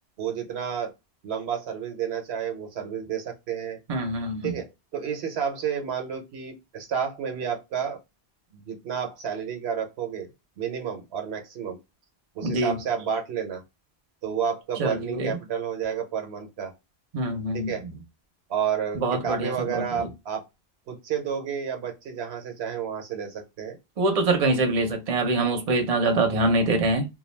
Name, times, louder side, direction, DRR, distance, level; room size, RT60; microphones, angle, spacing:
voice 1, 0.2-0.9 1.2-3.8 4.4-8.0 8.5-10.3 10.6-11.8 12.3-13.6 14.2-16.7 17.5-17.8 18.5-20.4 20.9-23.8, right 7 dB, 80° right, 0.9 m, -30 dB
voice 2, 3.9-4.5 12.4-12.8 14.8-15.4 17.1-17.7 19.0-20.1 24.0-27.1, right 2 dB, 45° right, 0.6 m, -24 dB
2.3 x 2.2 x 3.1 m
omnidirectional pair, 1.1 m